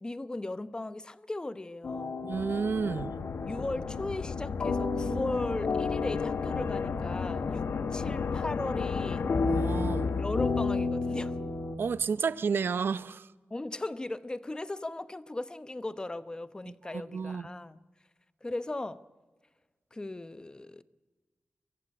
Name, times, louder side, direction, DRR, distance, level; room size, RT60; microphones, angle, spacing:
voice 1, 0.0-2.2 3.5-9.3 10.2-11.4 13.5-17.8 18.4-19.0 19.9-20.8, left 2 dB, 20° left, 0.8 m, -37 dB
sound 1, 1.8-11.8, left 4 dB, 65° left, 1.7 m, -33 dB
voice 2, 2.2-3.1 9.4-10.1 11.8-13.3 16.9-17.5, right 5 dB, 70° right, 0.7 m, -31 dB
sound 2, 2.3-10.8, left 5 dB, 85° left, 1.1 m, -34 dB
24.0 x 15.0 x 9.7 m
wide cardioid pair, 110°, 4 cm